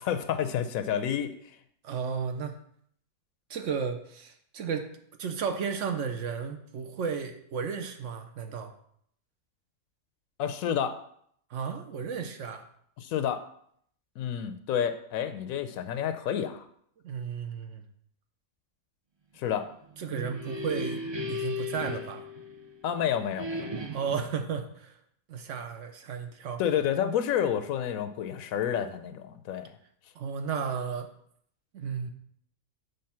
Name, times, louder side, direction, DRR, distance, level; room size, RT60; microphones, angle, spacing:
voice 1, 0.0-1.3 10.4-11.0 13.0-13.4 14.2-16.7 19.4-19.7 22.8-23.8 26.6-29.7, left 9 dB, 85° left, 10 dB, 1.0 m, -29 dB
voice 2, 1.8-2.6 3.5-4.9 5.2-8.7 11.5-12.6 17.0-17.8 20.0-21.0 21.3-22.2 23.9-25.0 25.3-26.6 30.1-31.1 31.7-32.1, right 6 dB, 65° right, 6 dB, 1.0 m, -33 dB
sound 1, 19.8-22.9 23.4-24.3, left 1 dB, 45° right, 0.3 m, -36 dB
6.7 x 3.4 x 5.7 m, 0.66 s
omnidirectional pair, 1.4 m